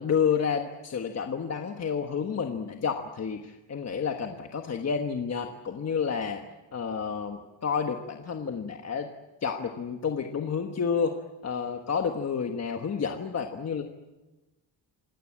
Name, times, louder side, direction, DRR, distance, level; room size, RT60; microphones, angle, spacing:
voice 1, 0.0-6.4 6.7-9.1 9.4-11.2 11.4-13.8, left 6 dB, 35° left, 4 dB, 1.4 m, -30 dB
27.0 x 19.0 x 8.8 m, 1.1 s
wide cardioid pair, 175°, 44 cm